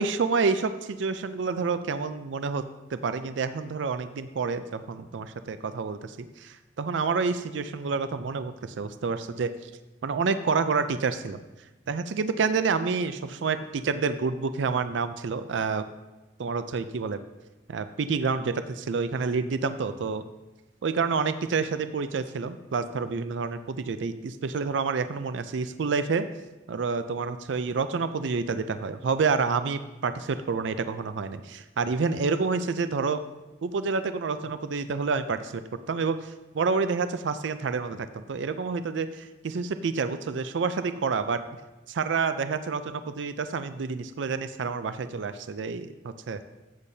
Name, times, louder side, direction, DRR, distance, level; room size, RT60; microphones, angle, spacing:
voice 1, 0.0-2.6 2.9-9.5 10.0-11.4 11.9-15.8 16.4-17.2 17.7-20.2 20.8-26.3 26.7-33.2 33.6-35.6 35.9-41.4 41.9-45.9 46.3-46.4, right 4 dB, 70° right, 11 dB, 0.4 m, -28 dB
14.0 x 8.2 x 2.7 m, 1.1 s
head